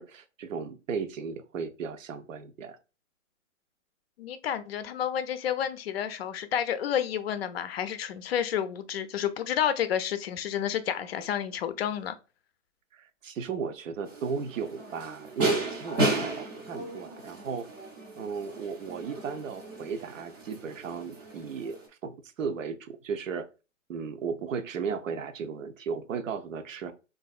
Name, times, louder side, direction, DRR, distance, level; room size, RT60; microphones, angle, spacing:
voice 1, 0.0-2.8 12.9-17.7 18.1-21.8 22.0-23.5 23.9-26.9, right 6 dB, 75° right, 0.6 m, -35 dB
voice 2, 4.2-12.1, left 9 dB, 50° left, 0.4 m, -30 dB
sound 1, 14.1-21.9, right 2 dB, 20° right, 0.4 m, -34 dB
3.2 x 2.5 x 2.3 m
hypercardioid pair, 125°, 39 cm